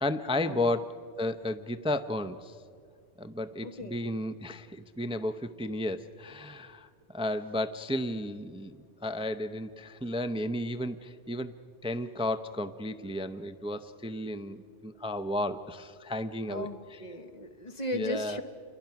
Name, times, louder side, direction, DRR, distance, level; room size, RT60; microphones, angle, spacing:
voice 1, 0.0-0.9 1.2-2.6 3.2-8.8 9.0-11.5 11.8-14.6 14.8-16.7 17.9-18.4, left 1 dB, 10° right, 11 dB, 0.3 m, -33 dB
voice 2, 3.6-4.1 16.5-18.4, left 1 dB, 35° left, 7 dB, 1.3 m, -37 dB
29.0 x 23.0 x 5.8 m, 2.3 s
omnidirectional pair, 1.2 m